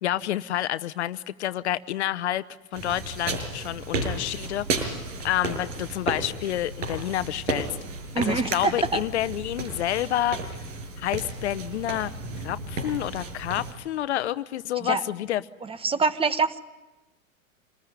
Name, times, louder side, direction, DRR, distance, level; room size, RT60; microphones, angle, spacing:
voice 1, 0.0-2.4 2.7-4.9 5.2-7.7 8.2-10.4 11.0-12.1 12.4-15.4, left 13 dB, 55° left, 16 dB, 1.0 m, -28 dB
sound 1, 2.7-13.7, right 3 dB, 60° right, 6.6 m, -33 dB
voice 2, 8.1-9.0 14.8-15.0 15.7-16.6, right 4 dB, 15° right, 13 dB, 1.3 m, -25 dB
27.0 x 20.5 x 9.8 m, 1.1 s
figure-of-eight pair, 95°, 41 cm